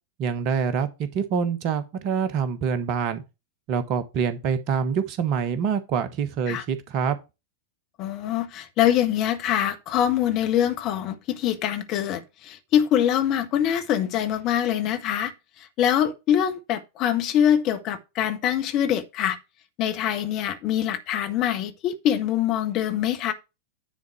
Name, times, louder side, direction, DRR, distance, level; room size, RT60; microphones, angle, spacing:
voice 1, 0.2-3.2 3.7-7.2, right 6 dB, 40° right, 1.3 m, -26 dB
voice 2, 8.0-15.3 15.6-19.4 19.8-23.3, left 10 dB, 40° left, 1.5 m, -24 dB
10.0 x 4.0 x 6.2 m
figure-of-eight pair, 90°, 0 cm